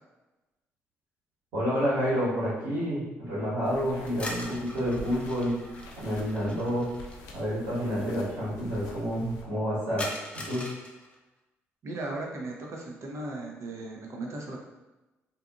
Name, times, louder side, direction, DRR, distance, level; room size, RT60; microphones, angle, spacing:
voice 1, 1.5-5.5 6.0-6.9 7.3-10.1 10.3-10.6, equal, 75° right, -10 dB, 1.4 m, -29 dB
sound 1, 3.6-9.4, left 1 dB, 80° left, 0.4 m, -46 dB
sound 2, 4.1-7.2 10.0-11.2, left 1 dB, 20° left, 0.6 m, -41 dB
voice 2, 11.8-14.6, right 2 dB, 55° right, -1 dB, 0.6 m, -37 dB
2.6 x 2.5 x 2.4 m, 1.1 s
hypercardioid pair, 50°, 6 cm